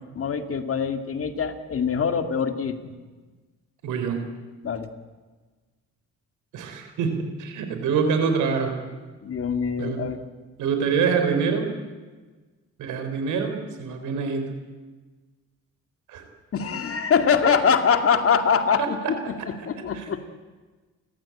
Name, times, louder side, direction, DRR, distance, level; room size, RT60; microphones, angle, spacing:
voice 1, 0.1-2.9 4.6-4.9 9.2-10.2 16.5-20.3, left 6 dB, 50° left, 7 dB, 2.4 m, -23 dB
voice 2, 3.8-4.3 6.5-8.8 9.8-10.0 10.6-11.7 12.8-14.5 16.1-16.2 19.9-20.1, right 5 dB, 90° right, 6 dB, 4.6 m, -25 dB
30.0 x 14.5 x 8.7 m, 1.3 s
cardioid pair, 90°, 30 cm